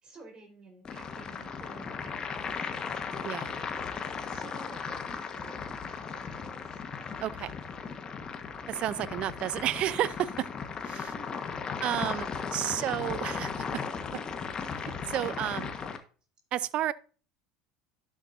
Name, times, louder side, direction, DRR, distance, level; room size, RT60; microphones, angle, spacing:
voice 1, 0.0-3.7 4.3-5.6 5.9-6.8 11.0-11.9 12.7-13.4 13.8-14.0, right 2 dB, 35° right, 4.7 m, -52 dB
sound 1, 0.8-16.0, left 6 dB, 35° left, 1.5 m, -36 dB
voice 2, 7.2-7.5 8.7-10.5 10.8-11.1 11.8-13.5 14.7-15.7 16.5-16.9, right 12 dB, 50° right, 0.5 m, -31 dB
12.0 x 7.3 x 2.7 m
hypercardioid pair, 75°, 2 cm